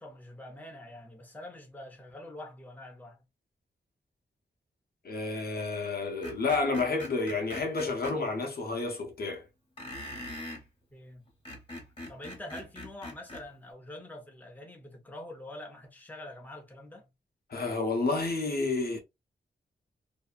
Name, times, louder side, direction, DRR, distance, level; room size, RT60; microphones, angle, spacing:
voice 1, 0.0-3.2 10.9-11.2 12.1-17.1, left 1 dB, 10° left, 0.7 m, -45 dB
voice 2, 5.0-9.5 17.5-19.0, left 3 dB, 55° left, 0.7 m, -30 dB
Screech, 6.2-8.2 9.8-10.6 11.3-13.5, left 1 dB, 30° left, 1.2 m, -42 dB
2.7 x 2.2 x 2.4 m
wide cardioid pair, 115°, 18 cm